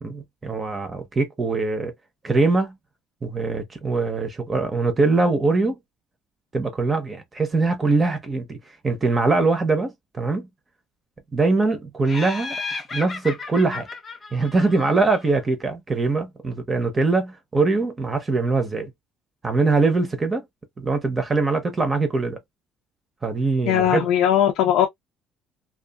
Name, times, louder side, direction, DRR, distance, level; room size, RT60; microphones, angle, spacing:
voice 1, 0.0-1.9 2.2-2.7 3.2-5.8 6.5-8.6 8.8-10.5 11.3-12.6 12.9-13.9 14.3-18.9 19.4-20.4 20.8-22.4 23.2-24.0, right 3 dB, 20° right, 0.7 m, -22 dB
Laughter, 12.1-15.4, left 4 dB, 30° left, 0.7 m, -34 dB
voice 2, 23.6-24.9, left 10 dB, 80° left, 0.6 m, -19 dB
2.7 x 2.4 x 2.3 m
cardioid pair, 130°, 0 cm